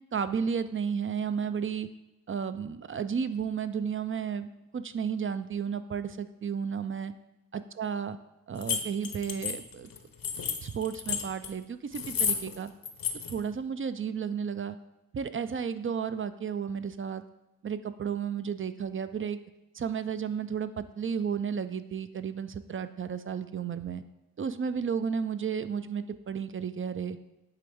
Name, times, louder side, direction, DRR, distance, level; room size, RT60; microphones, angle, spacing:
voice 1, 0.1-1.9 2.3-7.1 7.5-8.2 8.5-9.9 10.6-12.7 13.3-14.8 15.1-17.2 17.6-19.4 19.7-24.0 24.4-27.2, right 7 dB, 35° right, 12 dB, 0.4 m, -33 dB
sound 1, 8.6-11.5 11.9-12.6 12.8-13.4, left 7 dB, 65° left, 0.8 m, -31 dB
8.2 x 3.4 x 3.5 m, 0.99 s
cardioid pair, 45°, 37 cm